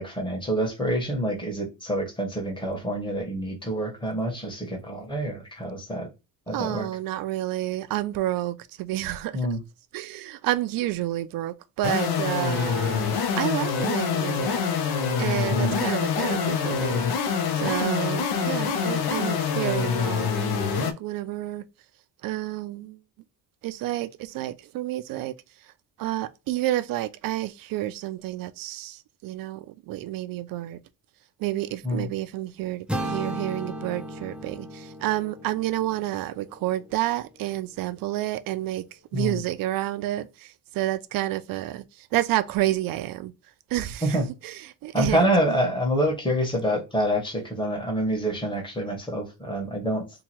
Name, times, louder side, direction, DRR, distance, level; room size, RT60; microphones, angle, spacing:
voice 1, 0.0-6.1 6.5-6.9 9.3-9.6 15.5-15.8 31.8-32.1 39.1-39.4 44.0-44.2 44.9-50.1, equal, 10° left, 1.1 m, -27 dB
voice 2, 6.5-9.4 9.9-14.6 15.2-17.1 17.6-21.6 22.2-23.0 23.6-25.3 26.0-30.8 31.4-38.8 39.1-43.3 43.7-44.2 44.4-45.3, right 15 dB, 60° right, 0.5 m, -30 dB
sound 1, 11.8-20.9, left 6 dB, 80° left, 0.7 m, -25 dB
sound 2, 32.9-36.9, right 1 dB, 5° right, 0.4 m, -35 dB
2.9 x 2.3 x 4.2 m
cardioid pair, 150°, 38 cm